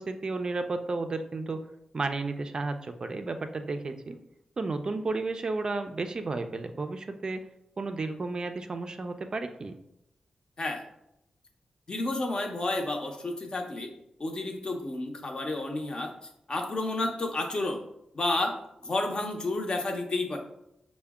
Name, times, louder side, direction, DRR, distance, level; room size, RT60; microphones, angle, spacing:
voice 1, 0.0-1.6 1.9-4.2 4.6-7.4 7.8-9.7, right 3 dB, 40° right, 7 dB, 0.3 m, -32 dB
voice 2, 11.9-13.9 14.2-16.1 16.5-17.8 18.1-18.5 18.8-20.4, left 2 dB, 40° left, 3 dB, 0.7 m, -30 dB
5.5 x 2.1 x 3.5 m, 0.82 s
wide cardioid pair, 100°, 2 cm